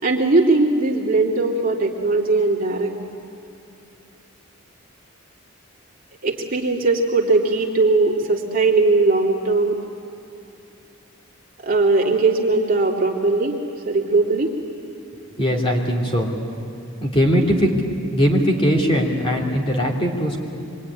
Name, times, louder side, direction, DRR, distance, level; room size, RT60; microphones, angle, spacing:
voice 1, 0.0-2.9 6.2-9.8 11.6-13.6 13.8-14.5, right 3 dB, 40° right, -2 dB, 2.7 m, -19 dB
voice 2, 15.4-16.3 17.0-17.7 18.1-20.4, equal, 25° left, -2 dB, 3.1 m, -20 dB
25.5 x 23.5 x 9.8 m, 2.6 s
head